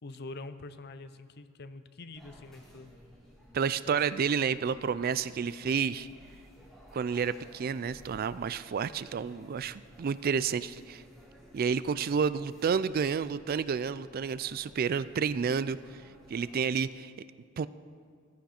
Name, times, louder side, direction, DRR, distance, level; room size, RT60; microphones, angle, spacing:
voice 1, 0.0-2.9 3.6-4.0, left 2 dB, 50° left, 12 dB, 0.6 m, -45 dB
sound 1, 2.1-16.6, equal, ahead, 2.9 m, -56 dB
voice 2, 3.5-6.1 6.9-11.0 11.5-15.8 16.3-17.1 17.6-17.7, right 6 dB, 45° right, 16 dB, 0.3 m, -30 dB
15.0 x 14.5 x 4.4 m, 2.1 s
head